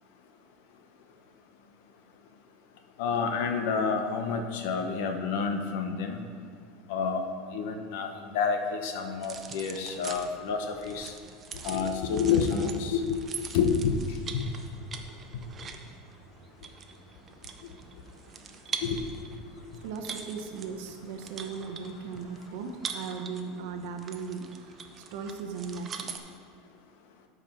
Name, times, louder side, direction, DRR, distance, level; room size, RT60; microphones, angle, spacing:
voice 1, 3.0-6.2 6.9-11.1 11.6-13.2 13.5-13.9 14.3-14.5 18.8-19.0, left 6 dB, 60° left, 5 dB, 0.9 m, -29 dB
sound 1, 9.2-26.2, right 6 dB, 20° right, 0.5 m, -43 dB
voice 2, 19.8-26.1, right 5 dB, 60° right, 4 dB, 0.9 m, -38 dB
13.0 x 5.1 x 4.4 m, 2.2 s
supercardioid pair, 175°, 0 cm